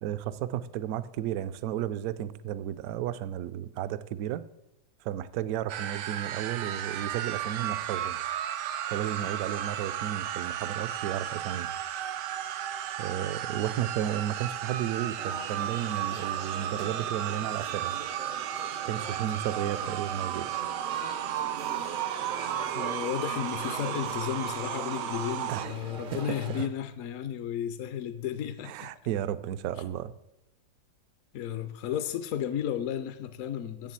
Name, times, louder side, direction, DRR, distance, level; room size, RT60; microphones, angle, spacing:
voice 1, 0.0-4.4 5.0-8.2 8.9-11.7 13.0-17.9 18.8-20.5 25.5-25.7 26.1-26.2 28.6-30.1, right 11 dB, 70° right, 14 dB, 0.9 m, -33 dB
sound 1, 5.7-25.7, right 11 dB, 90° right, 1.2 m, -34 dB
sound 2, 15.2-26.7, right 5 dB, 55° right, 0.5 m, -42 dB
voice 2, 22.7-28.9 31.3-33.9, left 10 dB, 65° left, 10 dB, 0.8 m, -33 dB
7.4 x 7.4 x 7.4 m, 0.88 s
omnidirectional pair, 1.8 m